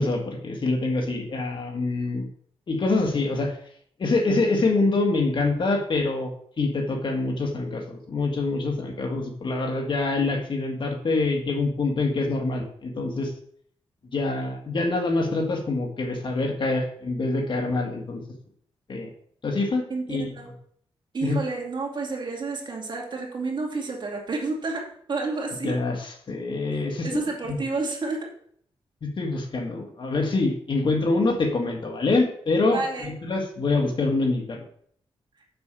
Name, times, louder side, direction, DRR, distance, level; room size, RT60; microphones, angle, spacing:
voice 1, 0.0-2.3 2.7-3.6 4.0-6.3 6.6-13.3 14.1-18.2 18.9-19.1 19.4-19.8 20.1-20.3 21.2-21.4 25.6-27.6 29.0-34.6, left 3 dB, 55° left, 2 dB, 2.0 m, -25 dB
voice 2, 19.9-20.5 21.1-25.8 27.0-28.3 32.7-33.1, right 3 dB, 50° right, 0 dB, 2.5 m, -30 dB
6.9 x 5.6 x 7.0 m, 0.63 s
wide cardioid pair, 100°, 10 cm